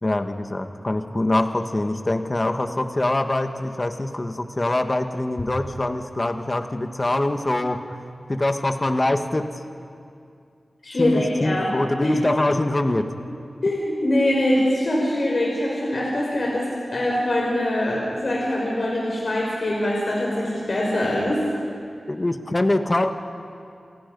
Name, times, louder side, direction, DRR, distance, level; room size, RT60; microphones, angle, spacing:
voice 1, 0.0-7.9 8.3-9.5 11.0-13.1 22.1-23.1, left 1 dB, 30° left, 6 dB, 1.5 m, -24 dB
voice 2, 10.8-11.7 12.0-12.2 13.6-21.4, left 1 dB, 55° left, -3 dB, 5.3 m, -23 dB
28.5 x 28.0 x 5.4 m, 2.4 s
wide cardioid pair, 95°, 0 cm